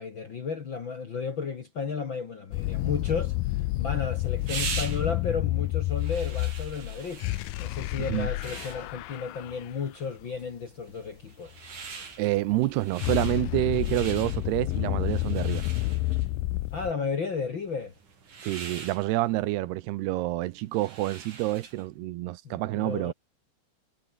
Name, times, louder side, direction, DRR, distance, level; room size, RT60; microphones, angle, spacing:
voice 1, 0.0-7.2 7.6-11.6 16.7-17.9 22.4-23.1, left 5 dB, 50° left, 1.5 m, -33 dB
sound 1, 2.5-9.7 12.5-16.9, left 18 dB, 75° left, 2.2 m, -30 dB
sound 2, 3.4-22.0, right 5 dB, 50° right, 5.9 m, -43 dB
voice 2, 12.2-15.6 18.4-23.1, right 17 dB, 90° right, 3.0 m, -28 dB
omnidirectional pair, 4.5 m